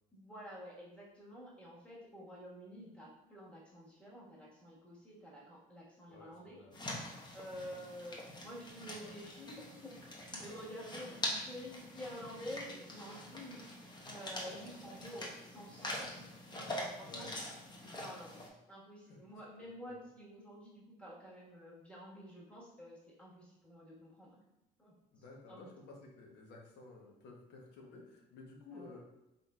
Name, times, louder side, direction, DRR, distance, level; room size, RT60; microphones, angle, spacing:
voice 1, 0.1-6.6 7.3-13.7 14.0-17.3 17.9-24.4 24.8-25.7 28.7-29.0, equal, 5° left, -6 dB, 1.4 m, -50 dB
voice 2, 6.1-6.8 17.1-17.3 17.8-18.0 19.1-19.2 19.8-20.0 25.1-29.0, left 3 dB, 80° left, 0 dB, 0.9 m, -54 dB
sound 1, 6.7-18.5, left 1 dB, 25° left, 0.9 m, -44 dB
3.9 x 3.8 x 2.3 m, 0.91 s
cardioid pair, 110°, 17 cm